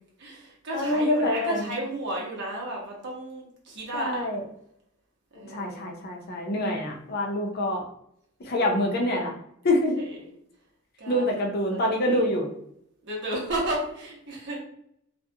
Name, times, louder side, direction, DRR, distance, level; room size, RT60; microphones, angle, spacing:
voice 1, 0.2-4.3 5.3-5.8 10.0-10.2 11.0-11.4 11.7-12.3 13.0-14.6, right 1 dB, 60° right, -2 dB, 0.8 m, -33 dB
voice 2, 0.7-1.7 3.9-4.4 5.4-7.9 8.4-9.3 9.6-10.1 11.1-12.5, left 1 dB, 50° left, 1 dB, 0.5 m, -26 dB
2.3 x 2.1 x 2.7 m, 0.71 s
head